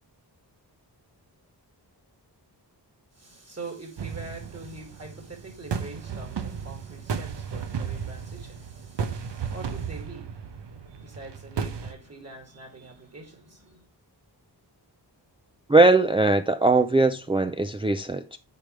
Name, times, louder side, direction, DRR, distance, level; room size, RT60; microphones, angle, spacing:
voice 1, 3.1-13.9, right 2 dB, 35° right, 2.4 m, -44 dB
sound 1, 4.0-11.9, right 6 dB, 75° right, 1.0 m, -34 dB
voice 2, 15.7-18.4, right 3 dB, 15° right, 0.4 m, -20 dB
8.4 x 5.2 x 3.2 m
wide cardioid pair, 85°, 43 cm